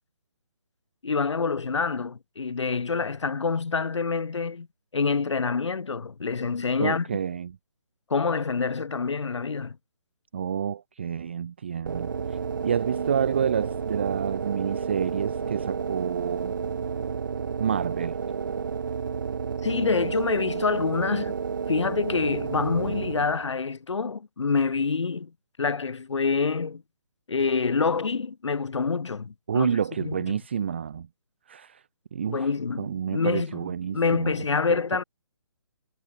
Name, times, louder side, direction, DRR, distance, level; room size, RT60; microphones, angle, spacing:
voice 1, 1.0-4.7 4.9-7.1 8.1-9.8 19.6-21.3 21.7-25.3 25.6-26.8 27.3-30.2 32.3-35.0, left 4 dB, 70° left, 2.1 m, -26 dB
voice 2, 6.8-7.6 10.3-16.5 17.6-18.2 29.5-31.1 31.5-31.8 32.1-32.5 32.8-34.4, right 8 dB, 25° right, 0.6 m, -29 dB
sound 1, 11.9-23.6, right 6 dB, 45° right, 1.0 m, -31 dB
hypercardioid pair, 175°, 15 cm